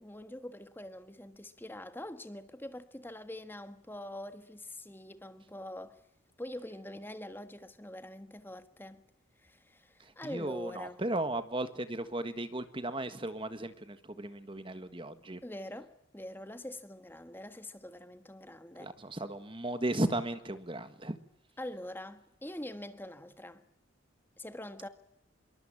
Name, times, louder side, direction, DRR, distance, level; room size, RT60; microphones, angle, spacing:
voice 1, 0.0-6.0 6.4-9.0 9.4-11.0 15.4-18.9 21.6-23.6 24.4-24.9, left 1 dB, 10° left, 1.5 m, -44 dB
voice 2, 10.2-15.4 18.8-21.2, right 1 dB, 25° right, 1.5 m, -35 dB
26.5 x 23.0 x 8.7 m
head